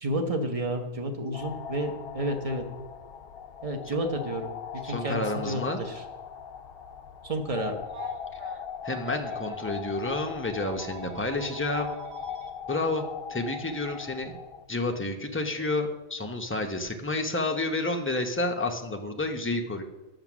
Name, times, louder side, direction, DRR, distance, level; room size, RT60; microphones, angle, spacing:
voice 1, 0.0-2.6 3.6-6.0 7.2-7.8, right 1 dB, 30° right, 5 dB, 0.9 m, -31 dB
sound 1, 1.3-14.7, left 7 dB, 60° left, 0.6 m, -40 dB
voice 2, 4.8-5.8 8.8-11.9 12.7-13.0 13.3-14.4 14.7-19.8, left 2 dB, 15° left, 3 dB, 0.4 m, -30 dB
Telephone, 7.9-9.7 10.6-12.5 13.9-14.0 15.5-15.7, right 6 dB, 60° right, 1.2 m, -45 dB
9.1 x 7.5 x 6.0 m, 1.1 s
omnidirectional pair, 1.5 m